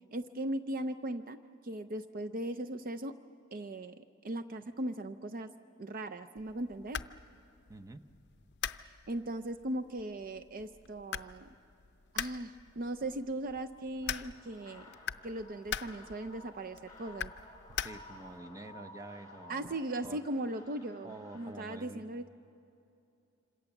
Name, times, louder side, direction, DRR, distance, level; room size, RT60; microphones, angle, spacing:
voice 1, 0.1-1.4 1.6-3.1 3.5-5.5 5.8-7.0 9.1-11.5 12.1-14.9 15.2-17.3 19.5-22.3, right 1 dB, 45° right, 9 dB, 0.5 m, -38 dB
sound 1, 6.4-18.4, left 8 dB, 55° left, 0.6 m, -43 dB
voice 2, 7.7-8.0 17.8-20.2 21.0-22.0, right 2 dB, 15° right, 8 dB, 0.8 m, -48 dB
sound 2, 14.0-21.5, left 1 dB, 20° left, 5.6 m, -54 dB
26.5 x 26.5 x 7.1 m, 2.8 s
head